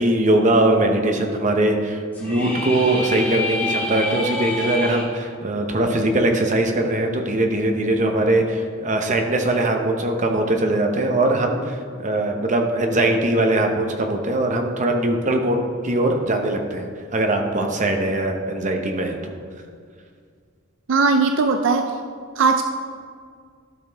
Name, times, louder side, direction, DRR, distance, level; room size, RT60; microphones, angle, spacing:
voice 1, 0.0-19.3, right 1 dB, 40° right, 3 dB, 0.8 m, -21 dB
sound 1, 2.1-5.0, left 2 dB, 10° left, 1.5 m, -27 dB
voice 2, 20.9-21.8 22.4-22.6, right 4 dB, 70° right, 6 dB, 0.4 m, -18 dB
12.5 x 6.5 x 3.4 m, 2.1 s
head